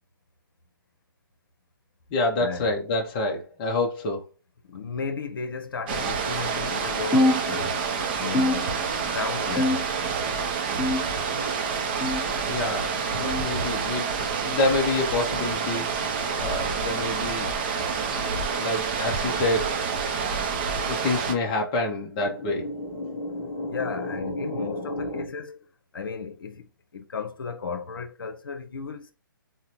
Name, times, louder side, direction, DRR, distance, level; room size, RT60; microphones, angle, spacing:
voice 1, 2.1-4.2 12.5-17.5 18.2-19.7 20.9-25.3, left 2 dB, 25° left, 0.5 m, -28 dB
voice 2, 4.6-7.9 8.2-9.9 23.7-25.7 25.9-29.1, left 5 dB, 75° left, 0.7 m, -34 dB
sound 1, 5.9-21.3, right 5 dB, 25° right, 0.4 m, -28 dB
sound 2, 7.1-8.0 8.3-9.1 9.6-10.2 10.8-11.4 12.0-12.4 13.2-13.5 14.4-14.7 15.7-15.9 16.9-17.1 18.1-18.3 19.3-19.5 20.5-20.6 21.8-21.9, left 1 dB, 5° left, 1.0 m, -27 dB
3.8 x 2.0 x 2.9 m
hypercardioid pair, 155°, 12 cm